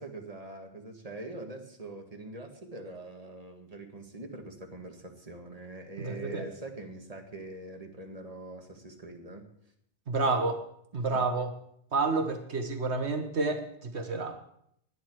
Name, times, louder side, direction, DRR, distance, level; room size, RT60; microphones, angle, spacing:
voice 1, 0.0-9.4, right 2 dB, 30° right, 3 dB, 2.1 m, -43 dB
voice 2, 6.0-6.4 10.1-10.6 10.9-11.5 11.9-14.3, right 3 dB, 70° right, 6 dB, 1.7 m, -29 dB
18.5 x 11.0 x 4.8 m, 0.70 s
omnidirectional pair, 1.2 m